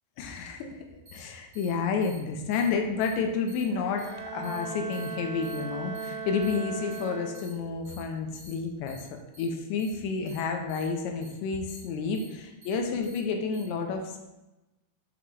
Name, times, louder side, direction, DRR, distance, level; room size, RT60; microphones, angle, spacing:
voice 1, 0.2-0.7 1.1-9.1 9.4-14.2, left 5 dB, 85° left, 3 dB, 2.8 m, -30 dB
sound 1, 1.0-1.2 1.5-1.7 2.0-2.1 2.5-2.6 3.0-3.1 3.5-3.6 4.0-4.1 4.4-4.6 4.9-5.0 5.4-5.6 5.9-6.0 6.4-6.5 6.9-7.0 7.3-7.5 7.8-8.0 8.3-8.5 8.9-9.0 9.3-9.4 9.8-9.9 10.2-10.4 10.7-10.8 11.2-11.3 11.7-11.8 12.1-12.2 12.6-12.7 13.0-13.2 13.5-13.6, equal, 55° right, 1.1 m, -51 dB
Bowed string instrument, 3.7-7.8, right 5 dB, 80° right, 3.1 m, -38 dB
8.2 x 3.0 x 4.7 m, 1.0 s
omnidirectional pair, 5.2 m